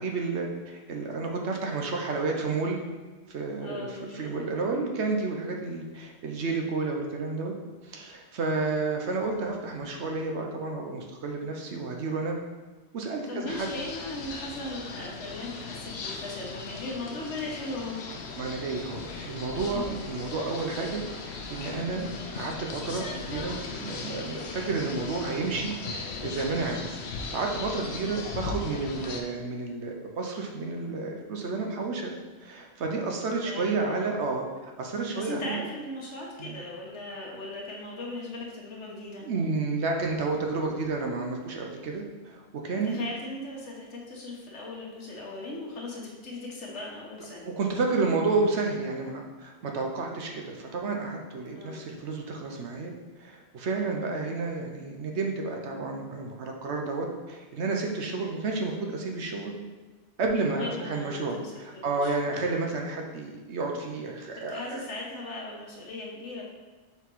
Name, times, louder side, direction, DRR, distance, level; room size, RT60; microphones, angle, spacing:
voice 1, 0.0-2.8 3.3-3.9 4.1-7.5 7.8-12.4 12.9-13.7 18.4-32.1 32.4-35.6 36.4-36.6 39.2-43.0 47.4-52.9 53.2-59.5 60.2-64.8, right 3 dB, 75° right, 1 dB, 1.0 m, -31 dB
voice 2, 3.6-4.5 13.3-18.0 19.7-19.8 33.4-34.1 35.1-39.3 42.8-47.5 51.5-51.8 60.6-62.4 64.5-66.4, left 2 dB, 85° left, -3 dB, 1.4 m, -38 dB
sound 1, 13.5-29.2, left 4 dB, 70° left, 1.0 m, -38 dB
5.8 x 3.9 x 4.5 m, 1.3 s
omnidirectional pair, 1.2 m